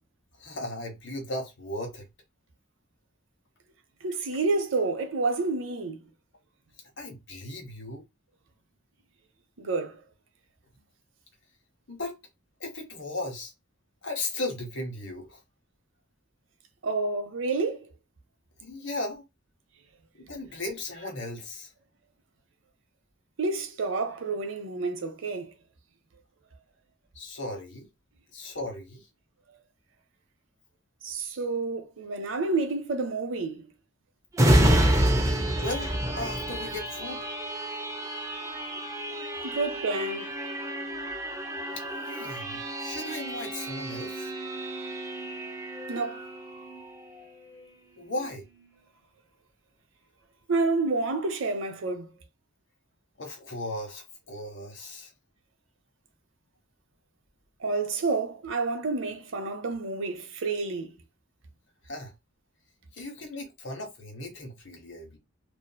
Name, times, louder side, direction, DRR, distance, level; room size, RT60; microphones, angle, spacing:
voice 1, 0.4-2.0 7.0-8.0 11.9-12.2 12.6-13.5 14.0-15.4 18.6-19.2 20.1-21.7 27.1-27.9 28.3-29.1 35.6-37.3 41.7-44.3 48.0-48.5 53.2-55.1 61.8-62.1 62.9-65.2, left 2 dB, 65° left, 1.1 m, -36 dB
voice 2, 4.0-6.0 9.6-10.0 16.8-17.9 23.4-25.5 31.0-33.7 39.4-40.4 45.9-46.2 50.5-52.1 57.6-61.0, right 3 dB, 80° right, 0.7 m, -29 dB
sound 1, 34.3-47.7 48.1-48.3, right 1 dB, 15° right, 0.5 m, -29 dB
2.7 x 2.6 x 2.2 m
head